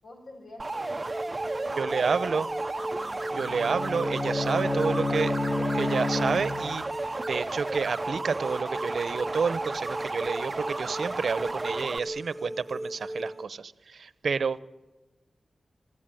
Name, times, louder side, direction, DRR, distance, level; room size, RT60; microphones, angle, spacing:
voice 1, 0.0-1.3 1.6-3.2, left 2 dB, 80° left, 3 dB, 6.7 m, -47 dB
sound 1, 0.6-12.0, right 2 dB, 25° right, 0.7 m, -34 dB
sound 2, 1.0-13.4, right 1 dB, 5° right, 1.1 m, -38 dB
voice 2, 1.8-2.5 3.4-5.4 5.7-14.6, right 5 dB, 65° right, 16 dB, 0.9 m, -29 dB
Bowed string instrument, 3.3-7.0, left 2 dB, 25° left, 1.5 m, -30 dB
24.0 x 16.0 x 9.2 m, 1.1 s
wide cardioid pair, 160°, 0 cm